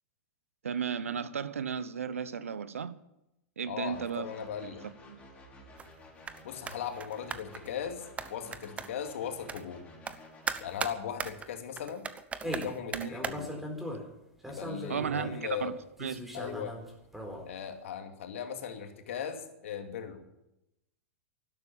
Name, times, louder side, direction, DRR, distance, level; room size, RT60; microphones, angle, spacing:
voice 1, 0.6-2.9 3.6-4.3 5.1-5.2 12.9-13.1 14.9-16.2, right 7 dB, 90° right, 0.9 m, -34 dB
voice 2, 3.7-4.8 6.4-8.0 8.3-9.8 10.6-12.0 12.4-13.5 14.5-15.7 16.3-16.8 17.5-20.2, left 8 dB, 70° left, 2.4 m, -38 dB
sound 1, 3.9-10.8, left 1 dB, 15° left, 5.4 m, -53 dB
sound 2, 5.8-6.0 6.2-6.4 6.7-7.7 8.2-9.1 9.5-9.6 10.1-10.2 10.5-13.3, right 5 dB, 20° right, 1.0 m, -37 dB
sound 3, 12.4-12.8 13.1-14.1 14.4-15.3 16.0-17.4, equal, 5° right, 4.1 m, -39 dB
12.0 x 12.0 x 8.7 m
hypercardioid pair, 110°, 7 cm